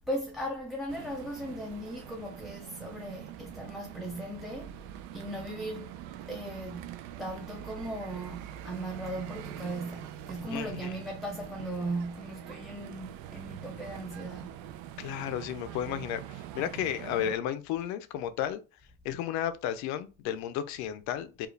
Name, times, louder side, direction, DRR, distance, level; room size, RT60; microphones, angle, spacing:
voice 1, 0.1-4.9 5.1-5.9 6.3-6.9 7.2-14.6, right 1 dB, ahead, 0.3 m, -37 dB
sound 1, 0.9-17.4, right 12 dB, 80° right, 0.5 m, -44 dB
voice 2, 10.5-10.9 15.0-18.6 19.0-21.5, left 10 dB, 75° left, 0.6 m, -33 dB
4.8 x 2.4 x 3.2 m
cardioid pair, 170°, 29 cm